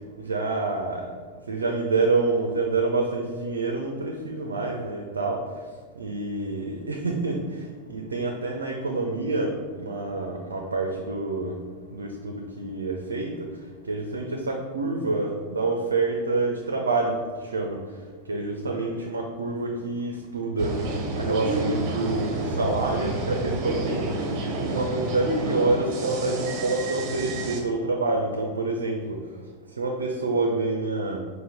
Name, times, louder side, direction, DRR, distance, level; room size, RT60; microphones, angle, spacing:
voice 1, 0.3-1.0 1.5-5.4 6.0-7.6 7.9-11.6 11.9-13.3 13.9-17.2 17.5-17.8 18.3-20.8 21.2-24.1 24.6-29.2 29.8-31.2, right 3 dB, 70° right, 2 dB, 0.4 m, -27 dB
sound 1, 20.6-27.6, right 2 dB, 35° right, 0.7 m, -29 dB
5.0 x 2.1 x 4.2 m, 1.5 s
figure-of-eight pair, 90°, 0 cm